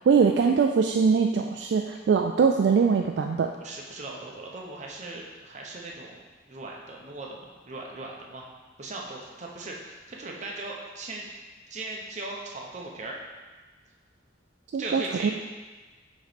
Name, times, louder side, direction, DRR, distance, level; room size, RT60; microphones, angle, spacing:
voice 1, 0.1-3.5 14.7-15.3, right 5 dB, 65° right, 3 dB, 0.3 m, -22 dB
voice 2, 3.6-6.2 6.5-8.5 8.8-11.3 11.7-13.2 14.8-15.3, right 2 dB, 40° right, -1 dB, 0.8 m, -38 dB
6.4 x 3.1 x 5.1 m, 1.3 s
head